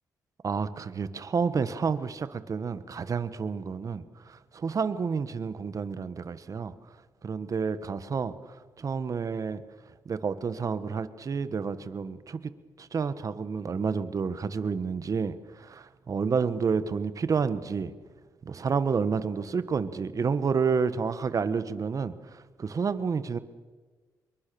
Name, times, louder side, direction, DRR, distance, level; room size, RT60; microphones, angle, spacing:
voice 1, 0.4-6.7 7.2-9.6 10.0-12.5 12.8-17.9 18.4-23.4, right 5 dB, 50° right, 13 dB, 1.5 m, -30 dB
26.5 x 22.5 x 7.0 m, 1.4 s
cardioid pair, 80°, 7 cm